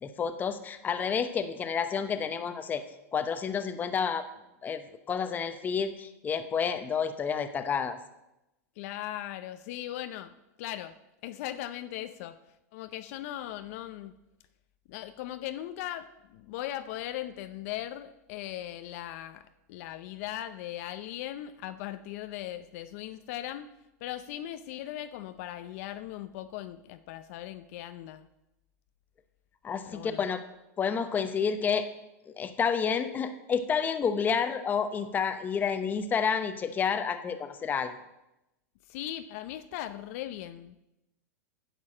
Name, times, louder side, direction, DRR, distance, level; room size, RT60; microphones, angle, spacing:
voice 1, 0.0-2.8 3.1-4.3 4.6-8.0 29.6-30.4 30.8-31.9 32.3-37.9, left 6 dB, 20° left, 9 dB, 0.8 m, -30 dB
voice 2, 8.8-10.3 10.6-10.9 11.2-12.4 12.7-14.2 14.9-19.4 19.7-23.7 24.0-28.3 29.9-30.2 38.9-40.8, left 13 dB, 55° left, 10 dB, 0.6 m, -38 dB
9.6 x 6.9 x 7.6 m, 0.93 s
supercardioid pair, 140°, 9 cm